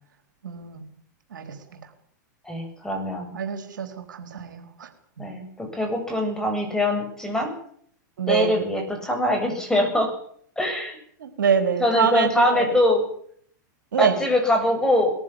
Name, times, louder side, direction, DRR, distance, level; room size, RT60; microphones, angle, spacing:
voice 1, 0.4-0.8 1.3-1.6 3.3-4.9 5.2-5.3 8.2-8.6 11.2-12.7 13.9-14.2, right 7 dB, 85° right, 7 dB, 3.9 m, -25 dB
voice 2, 2.5-3.3 5.2-7.5 8.3-10.1 10.6-11.0 11.8-13.0 14.0-15.1, left 1 dB, 5° left, 3 dB, 7.9 m, -23 dB
21.0 x 15.0 x 10.0 m, 0.63 s
hypercardioid pair, 115°, 10 cm